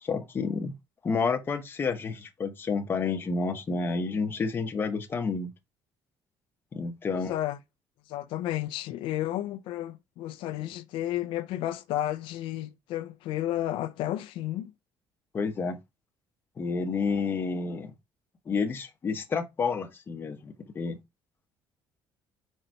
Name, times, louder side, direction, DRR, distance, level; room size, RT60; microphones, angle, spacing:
voice 1, 0.0-0.7 1.0-5.5 6.7-7.3 15.3-15.8 16.6-17.9 18.5-21.0, left 4 dB, 25° left, 1.0 m, -30 dB
voice 2, 7.1-7.6 8.1-14.7, left 13 dB, 75° left, 0.5 m, -32 dB
5.4 x 3.9 x 4.5 m
cardioid pair, 165°, 9 cm